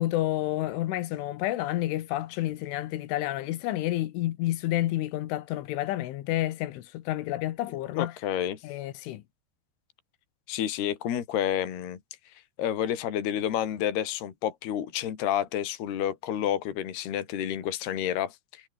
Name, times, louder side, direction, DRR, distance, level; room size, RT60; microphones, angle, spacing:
voice 1, 0.0-8.1 8.6-9.2, left 15 dB, 80° left, 3.8 m, -30 dB
voice 2, 8.0-8.6 10.5-12.0 12.6-18.6, left 10 dB, 60° left, 4.5 m, -29 dB
omnidirectional pair, 5.5 m